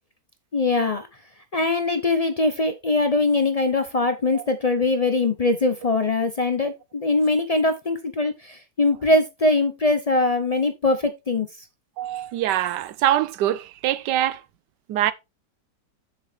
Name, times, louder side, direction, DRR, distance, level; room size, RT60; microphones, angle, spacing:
voice 1, 0.5-1.1 1.5-11.5, left 2 dB, 60° left, 0.3 m, -22 dB
voice 2, 12.0-14.4 14.9-15.1, right 12 dB, 90° right, 1.3 m, -23 dB
7.1 x 7.1 x 3.4 m
omnidirectional pair, 1.8 m